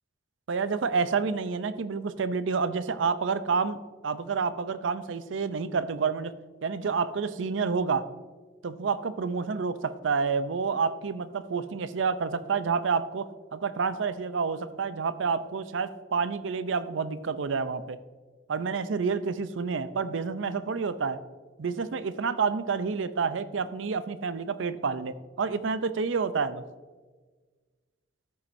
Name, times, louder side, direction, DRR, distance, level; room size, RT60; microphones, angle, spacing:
voice 1, 0.5-6.3 6.6-8.1 8.6-18.0 18.5-21.2 21.6-26.6, right 5 dB, 85° right, 13 dB, 0.5 m, -29 dB
13.0 x 7.2 x 2.6 m, 1.4 s
head